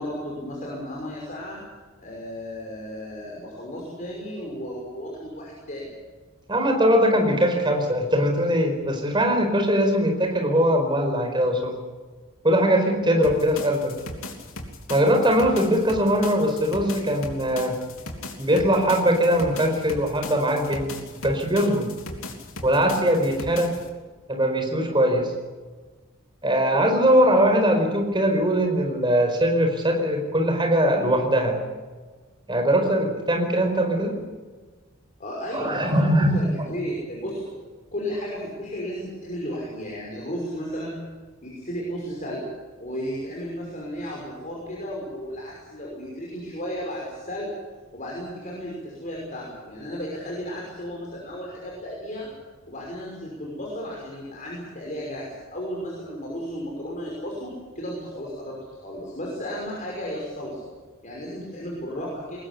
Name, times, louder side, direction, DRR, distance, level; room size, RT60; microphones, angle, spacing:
voice 1, 0.0-1.6 2.0-5.9 35.2-37.5 37.9-41.0 41.4-42.4 42.8-47.5 47.9-52.3 52.7-58.6 58.8-60.6 61.0-62.4, equal, 35° left, -3 dB, 5.8 m, -34 dB
voice 2, 6.5-11.7 12.4-13.9 14.9-17.7 18.4-20.9 21.2-21.9 22.6-23.7 24.3-25.3 26.4-31.6 32.5-34.1 35.5-36.4, equal, 20° right, 4 dB, 4.7 m, -21 dB
sound 1, 13.2-23.9, left 2 dB, 75° left, 3.3 m, -38 dB
22.0 x 19.5 x 8.5 m, 1.4 s
head